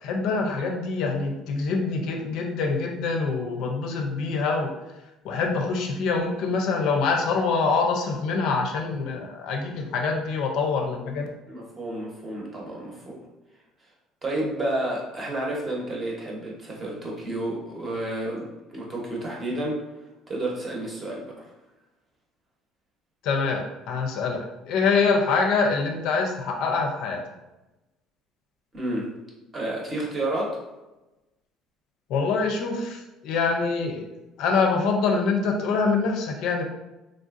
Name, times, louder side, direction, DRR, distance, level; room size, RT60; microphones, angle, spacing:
voice 1, 0.0-4.7 5.2-11.3 23.2-27.2 32.1-36.6, left 4 dB, 65° left, 2 dB, 0.4 m, -25 dB
voice 2, 11.5-13.2 14.2-19.8 20.3-21.5 28.7-29.1 29.5-30.6, right 1 dB, 25° right, -2 dB, 0.8 m, -30 dB
3.3 x 2.5 x 2.4 m, 1.0 s
cardioid pair, 145°, 0 cm